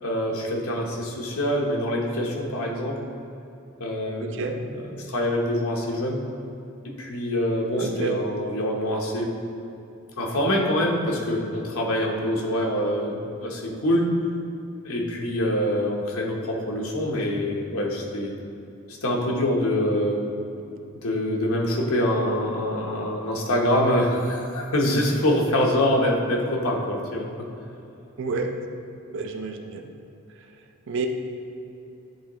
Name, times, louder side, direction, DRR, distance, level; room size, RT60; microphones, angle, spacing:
voice 1, 0.0-3.0 3.8-6.2 7.0-9.3 10.2-14.1 14.8-18.3 19.0-20.2 21.0-27.3, left 1 dB, 75° left, -1 dB, 1.0 m, -25 dB
voice 2, 4.2-4.6 7.8-8.2 28.2-28.5 29.1-29.9 30.9-31.1, right 4 dB, 60° right, 5 dB, 0.5 m, -29 dB
10.0 x 3.7 x 3.0 m, 2.8 s
head